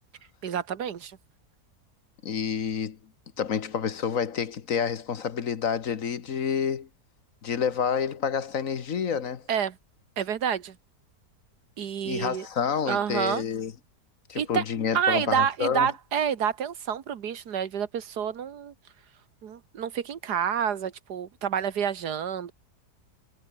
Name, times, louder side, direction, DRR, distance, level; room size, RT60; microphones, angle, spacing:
voice 1, 0.4-1.1 9.5-9.8 10.2-10.8 11.8-12.5 12.9-13.4 14.4-14.6 14.9-18.7 19.4-22.5, right 8 dB, 80° right, 1.9 m, -28 dB
voice 2, 2.2-3.0 3.4-6.9 7.4-9.4 12.0-13.7 14.3-15.9, left 7 dB, 55° left, 1.5 m, -28 dB
omnidirectional pair, 1.7 m